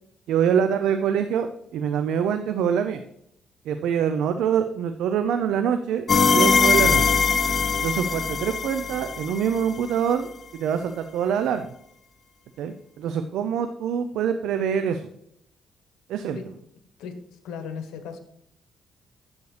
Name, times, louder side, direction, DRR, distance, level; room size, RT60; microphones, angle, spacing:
voice 1, 0.3-1.5 1.7-3.0 3.6-6.0 6.3-7.2 7.8-11.7 12.6-15.1 16.1-16.4, right 8 dB, 85° right, 8 dB, 0.6 m, -25 dB
sound 1, 6.1-9.8, left 5 dB, 40° left, 0.6 m, -21 dB
voice 2, 17.0-18.2, left 6 dB, 90° left, 7 dB, 1.3 m, -36 dB
9.6 x 7.9 x 3.3 m, 0.74 s
cardioid pair, 90°, 0 cm